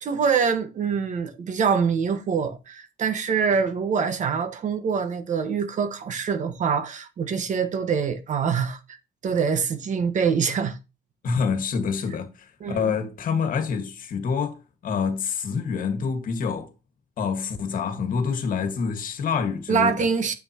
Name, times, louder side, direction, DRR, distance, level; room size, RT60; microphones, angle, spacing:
voice 1, 0.0-8.8 9.2-10.8 12.6-12.8 19.7-20.3, right 6 dB, 45° right, 1.5 m, -24 dB
voice 2, 11.2-14.6 14.8-16.7 17.2-20.1, left 6 dB, 55° left, 1.8 m, -27 dB
8.9 x 7.4 x 3.0 m
cardioid pair, 110°, 17 cm